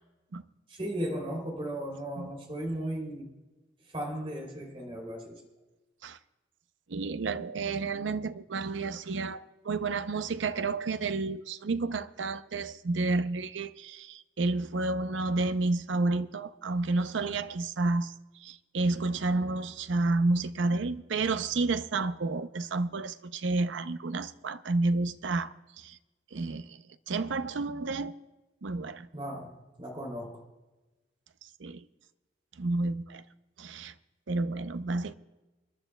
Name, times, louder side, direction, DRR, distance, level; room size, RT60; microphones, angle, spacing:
voice 1, 0.7-3.3 3.9-5.5 29.1-30.4, right 1 dB, 30° right, 3.0 m, -36 dB
voice 2, 6.9-18.1 18.4-26.0 26.3-28.1 28.6-29.1 31.6-31.8 32.6-33.2 33.6-33.9 34.3-35.1, right 3 dB, 75° right, 0.6 m, -30 dB
28.5 x 11.0 x 2.3 m
head